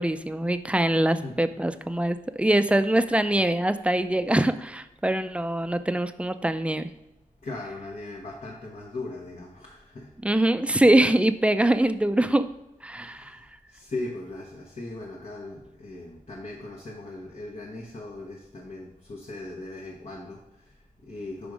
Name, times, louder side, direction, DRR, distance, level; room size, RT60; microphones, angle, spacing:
voice 1, 0.0-6.9 10.2-12.5 12.8-13.4, right 1 dB, 10° right, 11 dB, 0.3 m, -23 dB
voice 2, 7.4-10.1 12.9-21.5, left 2 dB, 60° left, -3 dB, 1.0 m, -39 dB
5.3 x 5.1 x 4.8 m, 0.92 s
wide cardioid pair, 85°, 14 cm